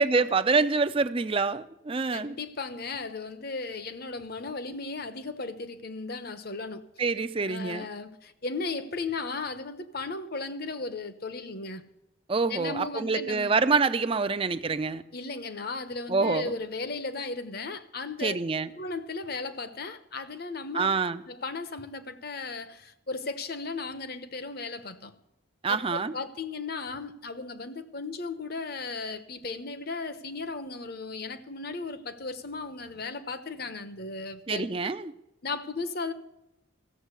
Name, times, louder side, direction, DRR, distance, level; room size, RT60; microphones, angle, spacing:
voice 1, 0.0-2.4 7.0-7.9 12.3-15.0 16.1-16.6 18.2-18.7 20.7-21.2 25.6-26.1 34.5-35.1, right 4 dB, 25° right, 0.5 m, -26 dB
voice 2, 2.1-6.9 7.4-11.8 12.5-13.6 15.1-18.3 18.7-20.9 21.3-25.1 25.7-34.7 35.4-36.1, left 3 dB, 45° left, 1.0 m, -36 dB
15.0 x 7.3 x 8.2 m
head